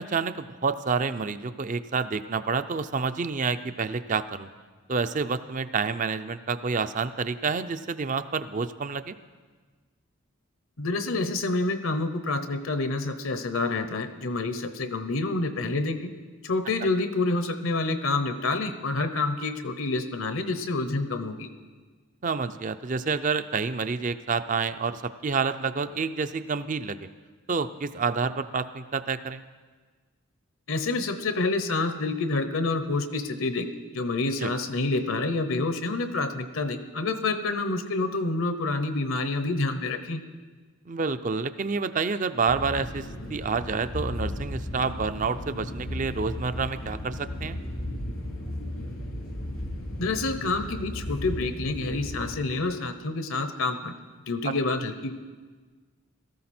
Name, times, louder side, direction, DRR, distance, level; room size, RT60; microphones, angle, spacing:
voice 1, 0.0-4.5 4.9-9.2 22.2-27.1 27.5-29.4 34.4-34.5 40.9-47.6 54.4-54.5, right 5 dB, 35° right, 11 dB, 0.4 m, -28 dB
voice 2, 10.8-16.1 16.4-21.5 30.7-33.7 33.9-40.2 50.0-53.9 54.3-55.1, left 3 dB, 70° left, 9 dB, 0.9 m, -28 dB
sound 1, 42.5-52.4, left 1 dB, 90° left, 3.2 m, -35 dB
17.0 x 14.0 x 4.3 m, 1.4 s
head